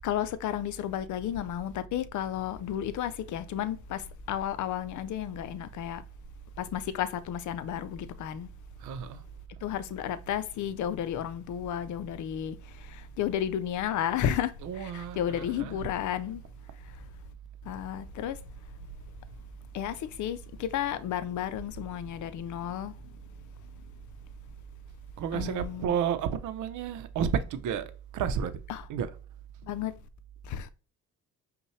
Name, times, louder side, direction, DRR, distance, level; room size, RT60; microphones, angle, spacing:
voice 1, 0.0-6.0 6.6-8.5 9.6-16.4 17.6-18.4 19.7-22.9 25.3-26.0 28.7-28.9 29.6-30.0 30.4-30.7, left 10 dB, 75° left, 0.6 m, -33 dB
voice 2, 8.8-9.2 14.6-15.9 25.2-28.5 28.9-29.1, right 8 dB, 75° right, 0.7 m, -31 dB
5.4 x 2.3 x 3.1 m
cardioid pair, 90°, 30 cm